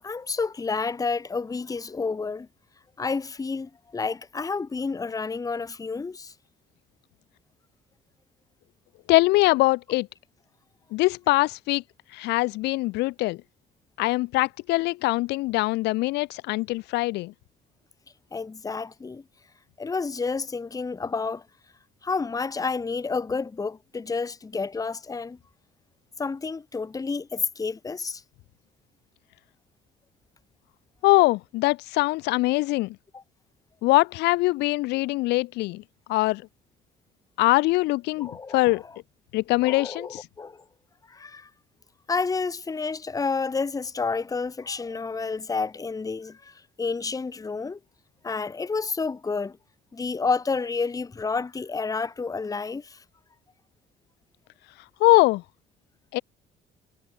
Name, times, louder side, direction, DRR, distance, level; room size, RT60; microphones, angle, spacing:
voice 1, 0.0-2.5 3.0-6.3 18.3-19.2 19.8-21.4 22.0-25.4 26.2-28.2 33.1-33.2 38.2-38.6 39.6-40.6 41.1-41.5 42.1-47.8 48.2-49.6 49.9-53.0, left 4 dB, 20° left, 1.5 m, -30 dB
voice 2, 9.1-10.1 10.9-11.8 12.1-13.4 14.0-17.3 31.0-33.0 33.8-35.8 36.1-36.4 37.4-38.8 39.3-40.3 55.0-55.4 56.1-56.2, left 20 dB, 85° left, 0.6 m, -22 dB
cardioid pair, 110°, 17 cm